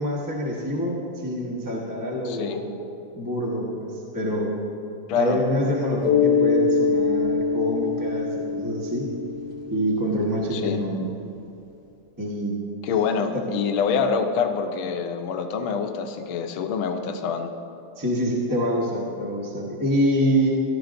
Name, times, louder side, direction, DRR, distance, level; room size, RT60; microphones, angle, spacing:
voice 1, 0.0-2.7 3.2-4.5 5.1-9.1 9.7-11.1 12.2-12.6 13.3-13.4 18.0-20.5, equal, 15° right, -4 dB, 0.8 m, -26 dB
voice 2, 2.2-2.6 5.1-5.4 10.5-10.8 12.8-17.5, left 6 dB, 75° left, 6 dB, 1.5 m, -26 dB
Mallet percussion, 6.0-10.5, left 5 dB, 60° left, 1.2 m, -24 dB
16.0 x 11.5 x 2.6 m, 2.7 s
omnidirectional pair, 2.4 m